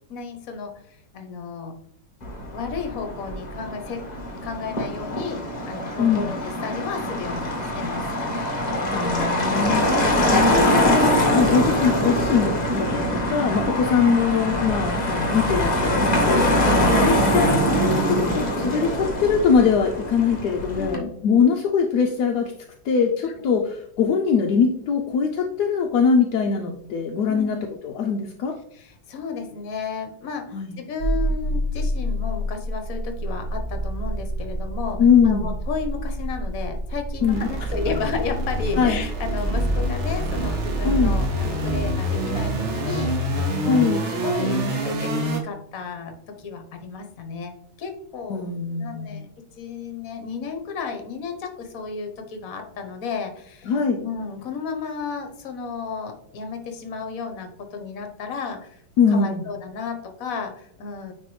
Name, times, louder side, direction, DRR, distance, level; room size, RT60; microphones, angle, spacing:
voice 1, 0.1-1.7 2.5-4.0 4.4-8.1 13.6-13.8 16.6-16.8 20.8-21.1 23.3-23.4 27.3-27.5 28.7-30.4 30.8-48.5 48.8-49.3 49.6-53.7 54.0-58.8 59.1-61.1, left 5 dB, 55° left, 5 dB, 1.2 m, -33 dB
Motor vehicle (road), 2.2-21.0, left 1 dB, 30° left, 0.9 m, -23 dB
voice 2, 6.0-6.3 8.9-9.9 10.3-22.5 22.8-28.5 30.5-30.8 35.0-35.5 37.2-37.5 38.7-39.0 40.8-41.2 43.6-44.0 48.3-49.3 53.7-54.0 59.0-59.4, left 6 dB, 70° left, 1 dB, 1.0 m, -22 dB
sound 1, 31.0-45.4, right 1 dB, 45° right, 1.0 m, -26 dB
9.4 x 3.3 x 3.1 m, 0.70 s
omnidirectional pair, 2.1 m